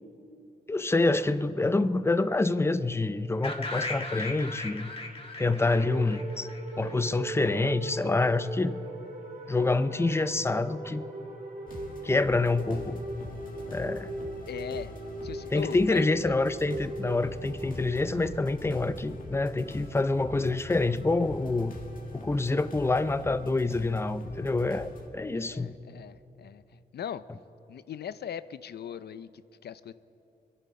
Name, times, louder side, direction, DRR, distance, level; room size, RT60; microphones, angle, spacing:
voice 1, 0.7-4.9 5.4-6.5 6.8-8.7 9.5-11.0 12.0-13.0 13.7-14.1 15.5-21.8 22.1-25.7, left 2 dB, 15° left, 13 dB, 0.5 m, -27 dB
sound 1, 3.4-7.3, left 2 dB, 35° left, 1.5 m, -38 dB
sound 2, 5.6-21.3, right 2 dB, 50° right, 2.4 m, -40 dB
sound 3, 11.7-25.1, left 2 dB, 55° left, 2.1 m, -44 dB
voice 2, 14.5-14.9 15.2-16.4 25.3-27.2 27.7-29.3 29.6-29.9, left 9 dB, 75° left, 15 dB, 0.5 m, -39 dB
27.0 x 11.0 x 4.3 m, 3.0 s
wide cardioid pair, 120°, 17 cm